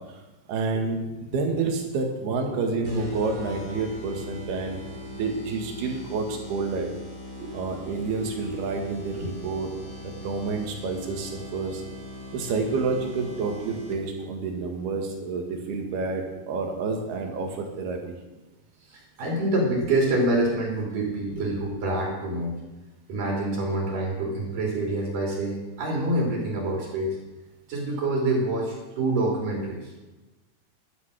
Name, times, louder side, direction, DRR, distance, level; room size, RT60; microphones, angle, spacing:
voice 1, 0.5-4.8 5.1-6.9 7.5-9.7 10.0-11.8 12.3-18.2, right 4 dB, 75° right, 3 dB, 3.8 m, -29 dB
sound 1, 2.8-14.2, left 1 dB, 20° right, 3.2 m, -40 dB
voice 2, 18.9-22.6 23.1-27.2 27.7-30.0, right 2 dB, 55° right, -2 dB, 4.4 m, -26 dB
12.0 x 11.5 x 6.4 m, 1.1 s
omnidirectional pair, 4.8 m